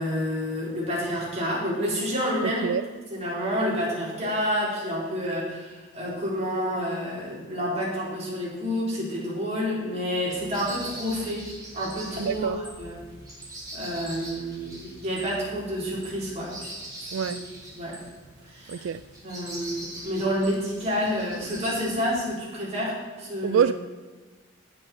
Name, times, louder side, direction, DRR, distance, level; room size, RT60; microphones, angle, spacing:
voice 1, 0.0-2.7 3.1-11.4 11.7-13.0 13.7-16.7 17.0-17.3 17.7-18.0 18.4-18.9 19.2-23.6, equal, 35° right, 4.1 m, -29 dB
voice 2, 2.4-2.8 12.2-12.6 17.1-17.4 18.7-19.0 23.4-23.7, right 8 dB, 85° right, 0.3 m, -25 dB
sound 1, 10.3-22.2, right 1 dB, 20° right, 4.0 m, -42 dB
17.5 x 6.3 x 4.4 m
head